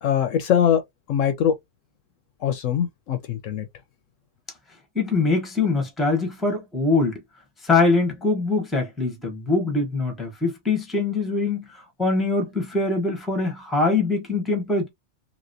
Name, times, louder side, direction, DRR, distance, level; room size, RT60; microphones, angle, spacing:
voice 1, 0.0-0.8 1.1-1.6 2.4-3.7, left 9 dB, 70° left, 0.9 m, -22 dB
voice 2, 4.9-7.2 7.6-14.9, left 3 dB, ahead, 0.8 m, -23 dB
3.0 x 2.8 x 2.6 m
omnidirectional pair, 1.5 m